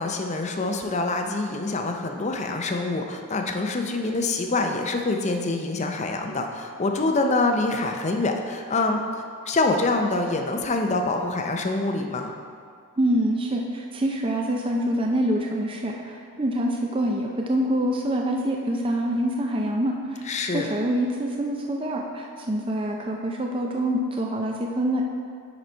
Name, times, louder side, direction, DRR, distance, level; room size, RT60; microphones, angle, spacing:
voice 1, 0.0-12.3 20.3-20.7, left 2 dB, 30° left, 4 dB, 0.5 m, -25 dB
voice 2, 13.0-20.2 20.5-25.1, right 1 dB, 25° right, 0 dB, 0.5 m, -26 dB
9.4 x 4.1 x 4.4 m, 2.3 s
head